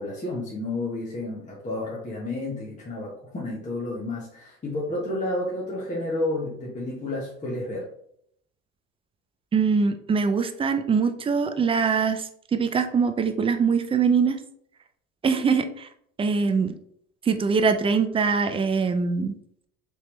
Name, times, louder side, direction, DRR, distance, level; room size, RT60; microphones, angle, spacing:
voice 1, 0.0-7.9, left 2 dB, 20° left, -4 dB, 1.0 m, -31 dB
voice 2, 9.5-14.4 15.2-15.9 16.2-16.7 17.2-19.3, right 5 dB, 15° right, 8 dB, 0.3 m, -23 dB
3.3 x 2.8 x 3.0 m, 0.68 s
hypercardioid pair, 70°, 39 cm